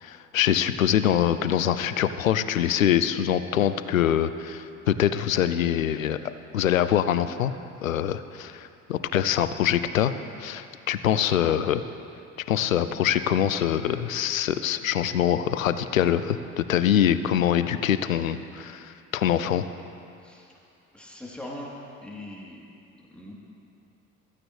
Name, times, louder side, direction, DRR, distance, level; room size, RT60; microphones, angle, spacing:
voice 1, 0.0-6.2 6.5-7.5 7.8-10.1 10.4-11.8 12.5-19.6, left 10 dB, 90° left, 12 dB, 0.5 m, -24 dB
voice 2, 20.9-21.7 22.0-22.6 23.1-23.3, left 1 dB, 5° left, -5 dB, 3.2 m, -40 dB
15.5 x 14.5 x 3.2 m, 2.6 s
figure-of-eight pair, 55°, 39 cm